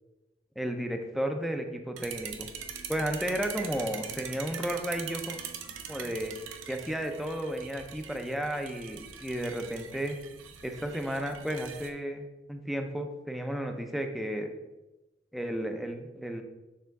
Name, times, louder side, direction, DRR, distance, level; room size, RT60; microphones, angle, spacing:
voice 1, 0.6-2.5 2.9-5.4 5.9-6.3 6.7-10.2 10.6-14.6 15.3-16.4, right 1 dB, ahead, 5 dB, 0.5 m, -33 dB
sound 1, 2.0-11.9, right 7 dB, 70° right, 0.6 m, -42 dB
6.8 x 3.5 x 4.6 m, 1.0 s
head